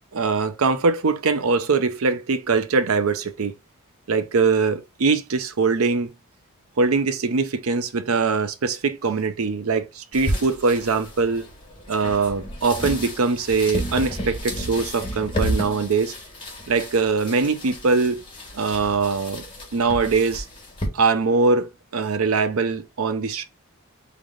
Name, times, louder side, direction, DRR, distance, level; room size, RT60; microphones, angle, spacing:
voice 1, 0.1-3.5 4.1-6.1 6.8-11.5 11.9-16.1 16.7-18.2 18.5-19.4 19.7-20.5 20.9-23.4, right 4 dB, 75° right, 0.6 m, -22 dB
sound 1, 10.1-20.9, equal, 25° left, 1.7 m, -32 dB
3.8 x 3.3 x 3.8 m
head